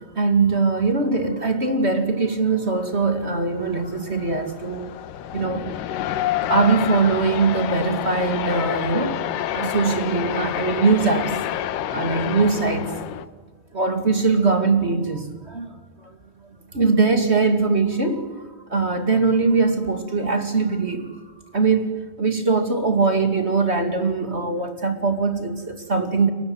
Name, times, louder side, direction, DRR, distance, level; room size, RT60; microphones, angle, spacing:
voice 1, 0.0-4.9 5.3-5.7 6.5-9.2 9.5-11.4 11.8-13.0 13.7-16.1 16.7-18.4 18.7-21.1 21.5-26.3, right 4 dB, 25° right, 1.4 m, -21 dB
sound 1, 2.9-13.3, left 11 dB, 65° left, 2.4 m, -28 dB
29.5 x 23.5 x 8.0 m
omnidirectional pair, 4.7 m